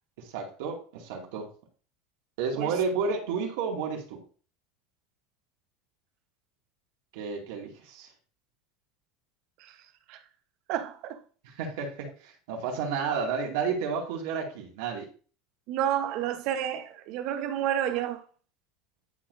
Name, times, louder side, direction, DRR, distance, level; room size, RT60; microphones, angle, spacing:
voice 1, 0.2-1.5 2.4-4.2 7.1-8.1 11.4-15.1, right 5 dB, 75° right, 2.3 m, -31 dB
voice 2, 10.7-11.2 15.7-18.2, right 10 dB, 60° right, 1.0 m, -30 dB
10.5 x 4.4 x 2.6 m
supercardioid pair, 135°, 0 cm